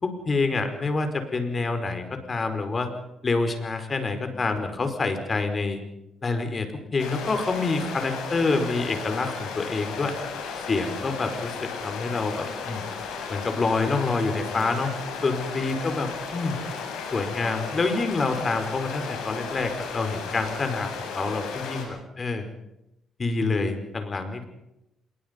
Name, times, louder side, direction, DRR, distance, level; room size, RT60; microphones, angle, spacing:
voice 1, 0.0-2.9 3.2-5.8 6.2-10.2 10.7-11.5 11.8-12.8 13.3-14.9 15.2-16.6 17.1-22.5 23.2-24.5, left 3 dB, 35° left, 7 dB, 5.1 m, -27 dB
sound 1, 7.0-21.8, left 5 dB, 85° left, 7.6 m, -35 dB
27.0 x 22.5 x 5.4 m, 0.88 s
cardioid pair, 90°, 0 cm